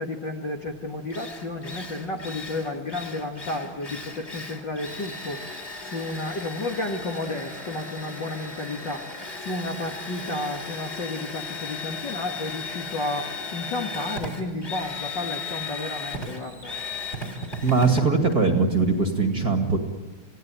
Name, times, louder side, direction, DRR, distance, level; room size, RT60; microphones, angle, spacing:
voice 1, 0.0-9.1 9.4-16.8, left 2 dB, 40° left, 2 dB, 2.1 m, -32 dB
Drill, 0.7-0.8 1.1-19.2, left 3 dB, 20° left, 3.6 m, -36 dB
voice 2, 17.6-19.8, right 4 dB, 30° right, 4 dB, 2.4 m, -21 dB
29.0 x 18.0 x 9.1 m, 1.4 s
omnidirectional pair, 3.8 m